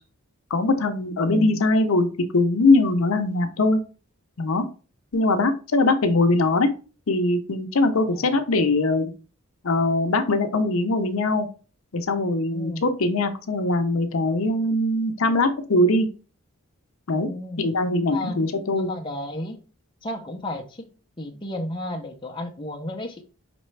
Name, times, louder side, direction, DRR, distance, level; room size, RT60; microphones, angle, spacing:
voice 1, 0.5-2.1 2.3-3.8 4.4-4.6 5.1-6.7 7.1-9.1 9.6-11.5 11.9-16.1 17.1-17.3 17.6-18.9, left 2 dB, 70° left, 0.6 m, -21 dB
voice 2, 12.5-12.8 17.1-17.6 18.0-18.4 18.8-19.6 20.0-20.9 21.2-23.2, left 1 dB, 20° left, 0.6 m, -33 dB
5.1 x 3.2 x 3.2 m
head